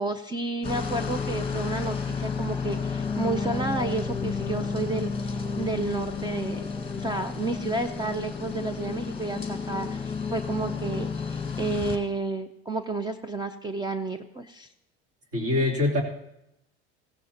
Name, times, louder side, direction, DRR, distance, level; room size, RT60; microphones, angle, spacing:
voice 1, 0.0-6.7 7.0-14.7, right 3 dB, 15° right, 10 dB, 0.6 m, -31 dB
sound 1, 0.6-12.0, left 5 dB, 15° left, 1.7 m, -31 dB
voice 2, 15.3-16.0, left 2 dB, 45° right, 0 dB, 3.2 m, -24 dB
16.0 x 15.0 x 2.9 m, 0.84 s
supercardioid pair, 95°, 32 cm